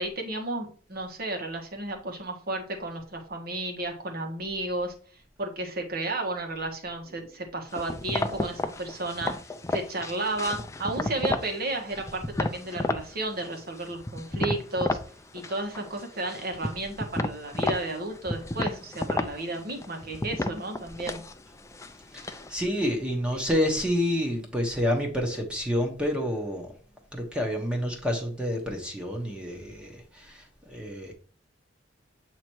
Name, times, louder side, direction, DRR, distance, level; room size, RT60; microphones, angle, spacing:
voice 1, 0.0-4.9 5.4-9.3 9.7-15.0 15.3-21.2, right 2 dB, 55° right, 1.3 m, -33 dB
sound 1, 7.7-11.6 11.9-13.1 13.4-15.1 15.4-16.0 16.3-22.5, left 2 dB, 15° left, 0.4 m, -31 dB
voice 2, 22.1-26.8 27.1-31.1, equal, 5° right, 1.0 m, -29 dB
7.7 x 3.0 x 4.5 m
head